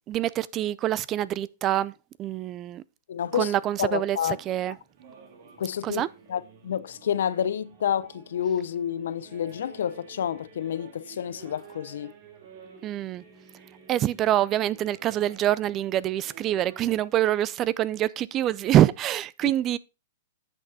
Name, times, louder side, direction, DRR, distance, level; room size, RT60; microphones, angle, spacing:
voice 1, 0.1-1.9 2.2-2.8 3.3-4.8 5.8-6.1 12.8-13.2 13.9-19.8, right 12 dB, 30° right, 0.4 m, -25 dB
voice 2, 3.1-4.4 5.6-12.1, left 9 dB, 75° left, 0.7 m, -29 dB
sound 1, 4.2-17.0, right 6 dB, 50° right, 2.5 m, -52 dB
9.6 x 5.8 x 4.2 m
hypercardioid pair, 135°, 0 cm